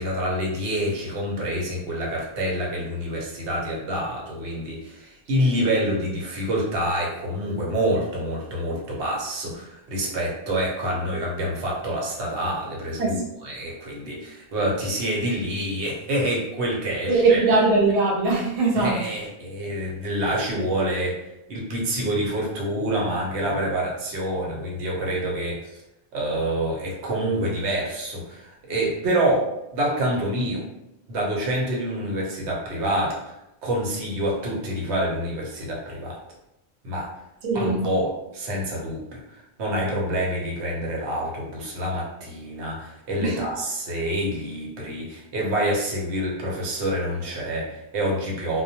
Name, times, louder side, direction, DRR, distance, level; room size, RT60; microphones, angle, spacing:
voice 1, 0.0-17.4 18.7-21.2 21.5-25.8 26.1-30.6 31.1-33.3 33.6-36.2 36.8-37.1 37.5-48.6, right 1 dB, 85° right, -3 dB, 1.0 m, -27 dB
voice 2, 17.1-19.1 37.4-37.9 43.2-43.4, right 3 dB, 45° right, -3 dB, 0.6 m, -20 dB
2.2 x 2.1 x 2.7 m, 0.87 s
omnidirectional pair, 1.1 m